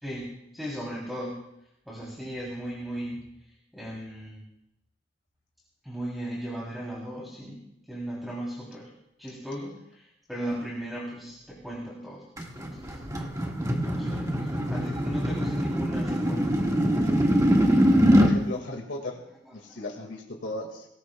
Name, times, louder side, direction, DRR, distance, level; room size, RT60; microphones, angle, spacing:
voice 1, 0.0-1.4 1.9-4.4 5.8-8.9 9.2-12.2 12.6-13.0 13.8-16.6 19.6-19.8, equal, ahead, -4 dB, 3.1 m, -37 dB
sound 1, 12.4-18.4, equal, 20° right, 1.6 m, -23 dB
voice 2, 18.2-19.2 19.5-20.9, left 2 dB, 85° left, 0 dB, 1.9 m, -36 dB
22.5 x 18.5 x 2.2 m, 0.82 s
head